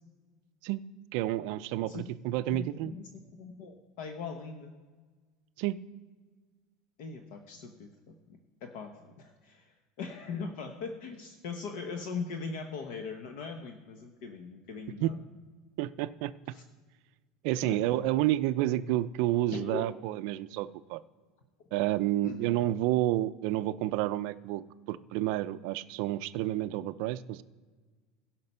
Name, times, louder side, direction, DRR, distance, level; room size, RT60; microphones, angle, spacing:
voice 1, 1.1-2.9 5.6-5.8 15.0-15.1 15.8-16.3 17.4-21.0 21.7-24.6 24.9-27.4, right 14 dB, 55° right, 13 dB, 0.4 m, -30 dB
voice 2, 2.5-3.1 3.4-4.7 7.0-15.2 16.5-16.6 17.6-18.1 19.5-19.8 22.2-22.5, left 5 dB, 55° left, 5 dB, 0.9 m, -40 dB
16.5 x 5.8 x 5.5 m, 1.4 s
cardioid pair, 175°, 0 cm